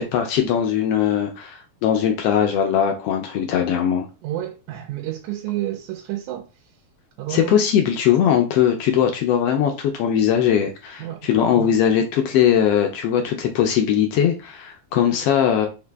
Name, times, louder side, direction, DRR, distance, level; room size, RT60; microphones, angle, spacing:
voice 1, 0.0-4.1 7.3-15.7, left 9 dB, 80° left, 1.4 m, -20 dB
voice 2, 4.2-6.5 7.2-7.6 11.0-11.7, right 13 dB, 85° right, 2.0 m, -30 dB
4.9 x 2.7 x 3.3 m
omnidirectional pair, 3.3 m